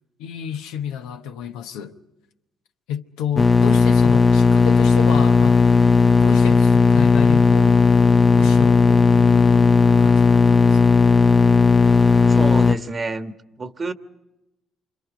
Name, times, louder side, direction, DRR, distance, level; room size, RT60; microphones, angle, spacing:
voice 1, 0.2-1.9 2.9-5.6 6.2-7.8 8.4-11.0, left 8 dB, 90° left, 1.1 m, -31 dB
sound 1, 3.4-12.7, left 4 dB, 25° left, 0.8 m, -15 dB
voice 2, 12.3-13.9, right 3 dB, 35° right, 1.3 m, -29 dB
27.5 x 25.5 x 5.1 m
supercardioid pair, 65°, 0 cm